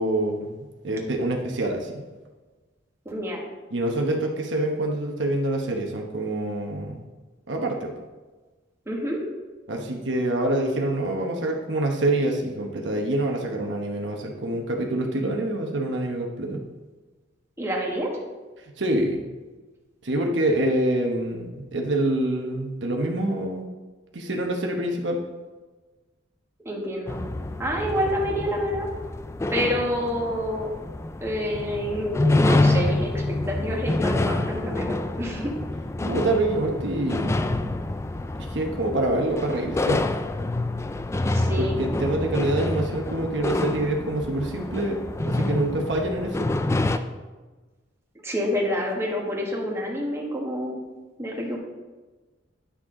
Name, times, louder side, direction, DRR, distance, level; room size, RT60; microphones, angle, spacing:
voice 1, 0.0-2.0 3.7-7.0 7.5-7.9 9.7-16.6 18.8-19.2 20.0-23.7 24.1-25.2 36.0-37.4 38.5-40.0 41.6-45.0 45.2-46.5, right 1 dB, 75° right, 1 dB, 1.1 m, -26 dB
voice 2, 3.0-3.4 8.8-9.2 17.6-18.1 26.6-27.2 27.6-28.9 29.5-30.7 31.2-35.5 41.3-41.8 48.2-50.8 51.2-51.6, equal, 15° right, -2 dB, 1.5 m, -28 dB
sound 1, 27.1-47.0, left 2 dB, 15° left, 0.3 m, -27 dB
9.7 x 6.2 x 3.8 m, 1.3 s
head